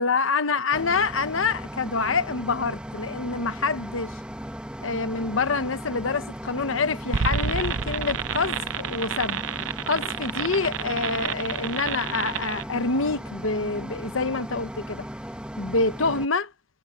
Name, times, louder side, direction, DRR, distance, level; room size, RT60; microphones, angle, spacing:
voice 1, 0.0-4.2 4.8-9.4 9.9-15.1 15.6-16.5, left 4 dB, 90° left, 1.1 m, -26 dB
sound 1, 0.7-16.3, equal, 5° right, 1.6 m, -37 dB
sound 2, 7.1-12.6, right 6 dB, 90° right, 0.7 m, -29 dB
head